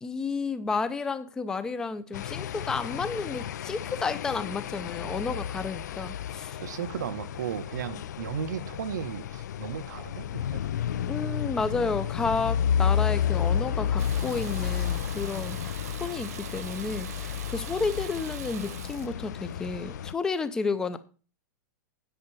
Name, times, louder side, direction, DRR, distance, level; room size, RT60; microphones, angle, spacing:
voice 1, 0.0-6.6 11.1-21.0, left 4 dB, 5° left, 0.5 m, -31 dB
sound 1, 2.1-20.1, left 9 dB, 80° left, 0.4 m, -31 dB
voice 2, 6.6-10.8, right 8 dB, 90° right, 1.1 m, -35 dB
Water tap faucet / Bathtub (filling or washing), 14.0-19.1, right 12 dB, 60° right, 0.5 m, -43 dB
9.5 x 5.6 x 7.0 m
supercardioid pair, 180°, 9 cm